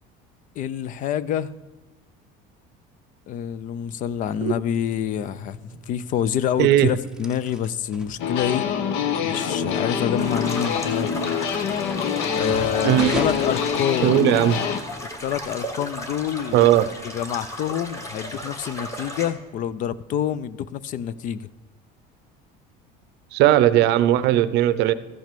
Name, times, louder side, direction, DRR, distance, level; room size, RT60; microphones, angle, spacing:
voice 1, 0.6-1.5 3.3-8.6 9.2-11.2 12.3-14.1 15.2-16.6 17.1-21.5, left 9 dB, 40° left, 19 dB, 0.4 m, -27 dB
sound 1, 4.0-14.5, right 2 dB, 5° right, 0.7 m, -40 dB
voice 2, 6.6-7.0 12.8-13.2 14.0-14.6 16.5-16.9 23.3-24.9, right 12 dB, 60° right, 16 dB, 0.6 m, -18 dB
sound 2, 8.2-14.8, left 7 dB, 65° left, 1.0 m, -25 dB
sound 3, 10.2-19.3, equal, 15° left, 1.4 m, -35 dB
13.5 x 6.3 x 6.7 m, 1.1 s
cardioid pair, 155°, 21 cm